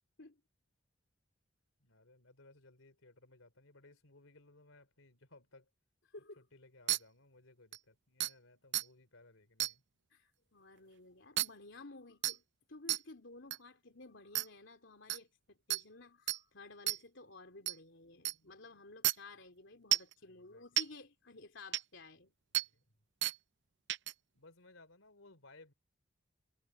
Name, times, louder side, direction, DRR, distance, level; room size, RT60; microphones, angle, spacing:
voice 1, 1.8-5.7 6.4-9.8 20.2-20.6 22.7-22.8 24.4-25.7, left 2 dB, 80° left, 3.5 m, -61 dB
voice 2, 6.1-6.4 10.1-12.4 12.7-22.3, left 3 dB, 65° left, 3.4 m, -54 dB
sound 1, 6.9-7.0 7.7-7.8 8.2-8.3 8.7-8.8 9.6-9.7 11.4-11.5 12.2-12.4 12.9-13.0 13.5-13.6 14.4-14.5 15.1-15.2 15.7-15.8 16.3-16.4 16.9-17.0 17.7-17.8 18.3-18.4 19.0-19.1 19.9-20.1 20.8-20.9 21.7-21.8 22.5-22.7 23.2-23.4 23.9-24.1, right 14 dB, 60° right, 0.5 m, -31 dB
head